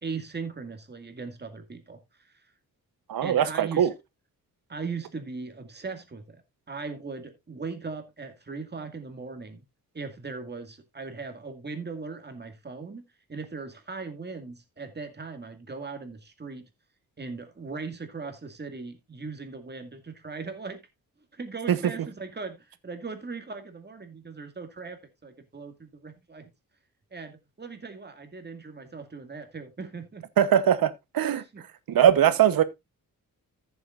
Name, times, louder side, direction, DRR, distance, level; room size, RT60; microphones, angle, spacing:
voice 1, 0.0-2.3 3.2-3.9 4.7-6.4 6.7-9.6 9.9-13.0 13.3-16.6 17.2-20.8 21.3-26.5 27.1-30.3 31.3-31.6 31.9-32.1 32.5-32.6, right 4 dB, 30° right, 2.2 m, -39 dB
voice 2, 3.1-3.9 21.7-21.8 30.4-31.4 31.9-32.6, right 10 dB, 80° right, 1.1 m, -21 dB
14.5 x 7.2 x 2.5 m
cardioid pair, 105°, 35 cm